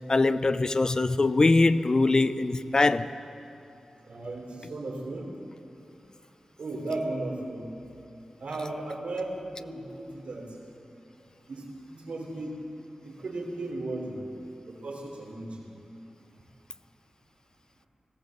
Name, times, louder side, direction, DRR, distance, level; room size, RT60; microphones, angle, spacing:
voice 1, 0.1-3.1, left 3 dB, 35° left, 0.5 m, -22 dB
voice 2, 4.1-5.3 6.6-7.7 8.4-10.5 11.5-11.6 11.9-12.5 13.1-14.2 14.7-15.6, right 2 dB, 85° right, 3.6 m, -35 dB
20.5 x 17.0 x 7.8 m
wide cardioid pair, 125°, 2 cm